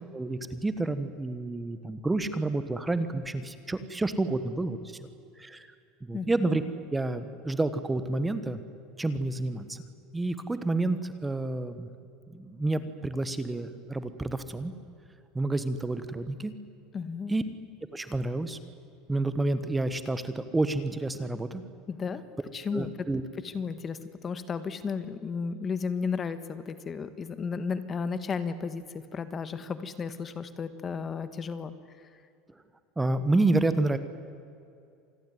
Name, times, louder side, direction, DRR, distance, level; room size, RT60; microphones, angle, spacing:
voice 1, 0.1-5.0 5.4-5.7 6.0-6.6 6.9-8.6 9.0-9.8 10.1-11.9 12.3-14.7 15.3-16.5 17.3-17.4 17.9-18.6 19.1-21.6 22.7-23.2 33.0-34.0, right 2 dB, 10° right, 12 dB, 1.4 m, -29 dB
voice 2, 16.9-17.3 21.9-22.2 22.5-23.1 23.4-31.7, left 5 dB, 25° left, 13 dB, 1.4 m, -33 dB
27.0 x 20.0 x 9.5 m, 2.5 s
supercardioid pair, 140°, 0 cm